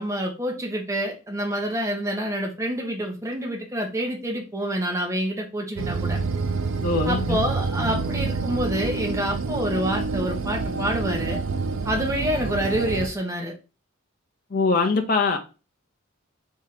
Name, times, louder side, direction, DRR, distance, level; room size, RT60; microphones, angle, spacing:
voice 1, 0.0-6.2 7.0-11.4 11.8-13.5, equal, 15° right, 0.7 m, -27 dB
sound 1, 5.8-13.1, right 4 dB, 60° right, 0.4 m, -27 dB
voice 2, 6.8-7.4 7.8-7.9 14.5-15.4, left 4 dB, 40° left, 0.5 m, -22 dB
3.2 x 2.7 x 3.8 m
head